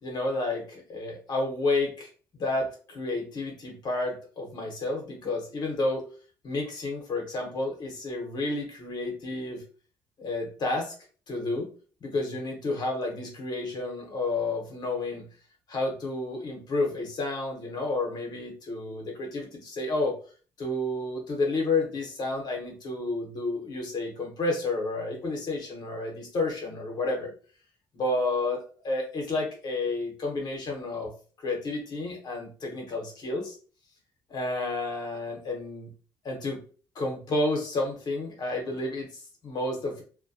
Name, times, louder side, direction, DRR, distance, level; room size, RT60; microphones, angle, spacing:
voice 1, 0.0-6.1 6.4-9.6 10.2-10.9 11.3-11.7 12.0-15.2 15.7-20.1 20.6-27.3 27.9-31.1 31.4-33.6 34.3-35.9 36.2-36.6 36.9-40.0, left 2 dB, 55° left, 1 dB, 0.9 m, -31 dB
2.2 x 2.2 x 2.6 m, 0.39 s
cardioid pair, 95°, 9 cm